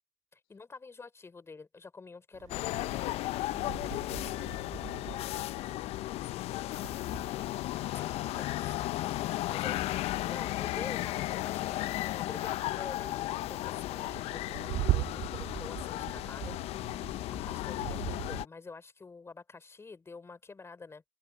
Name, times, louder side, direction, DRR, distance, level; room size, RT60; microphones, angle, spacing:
voice 1, 0.3-3.2 7.9-8.9 9.3-9.8 10.2-16.6 17.3-21.0, left 4 dB, 20° left, 4.5 m, -48 dB
sound 1, 2.3-18.4, right 16 dB, 60° right, 2.1 m, -41 dB
sound 2, 2.5-18.5, left 16 dB, 55° left, 0.8 m, -35 dB
voice 2, 3.6-3.7, left 17 dB, 85° left, 3.8 m, -58 dB
hypercardioid pair, 80°, 12 cm